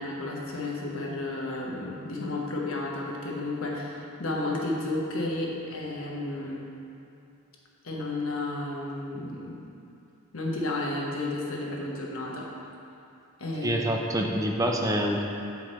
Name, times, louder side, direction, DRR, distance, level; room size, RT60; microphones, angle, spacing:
voice 1, 0.0-6.7 7.8-9.7 10.3-12.5 13.4-13.8, left 2 dB, 75° left, -2 dB, 1.1 m, -32 dB
voice 2, 13.6-15.3, equal, 15° right, 1 dB, 0.5 m, -26 dB
8.0 x 4.7 x 4.3 m, 2.7 s
head